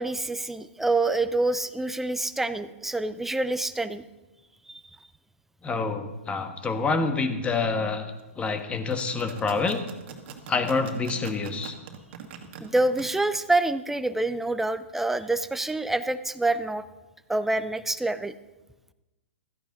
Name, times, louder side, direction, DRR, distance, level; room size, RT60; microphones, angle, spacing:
voice 1, 0.0-4.0 4.7-4.8 12.6-16.8 17.3-18.3, right 2 dB, 5° right, 12 dB, 0.6 m, -26 dB
voice 2, 5.6-9.8 10.5-11.7, left 4 dB, 15° left, 7 dB, 1.4 m, -27 dB
sound 1, 8.7-13.0, right 8 dB, 50° right, 2.1 m, -42 dB
15.5 x 14.0 x 4.0 m, 1.1 s
hypercardioid pair, 120°, 7 cm